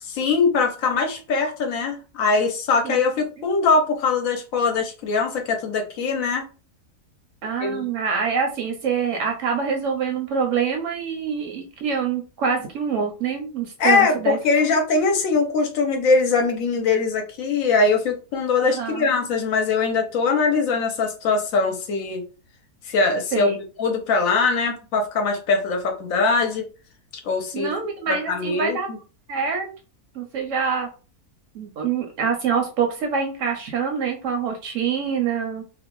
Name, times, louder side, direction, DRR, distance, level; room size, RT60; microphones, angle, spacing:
voice 1, 0.0-6.4 7.6-7.9 13.8-22.2 22.9-23.5 23.8-26.7 27.2-27.7 28.1-29.0, left 4 dB, 70° left, 0.9 m, -22 dB
voice 2, 7.4-14.7 18.6-19.0 23.3-23.6 27.5-28.9 29.3-29.7 30.1-30.9 31.5-35.6, right 6 dB, 70° right, 0.8 m, -25 dB
2.6 x 2.1 x 2.9 m
omnidirectional pair, 1.6 m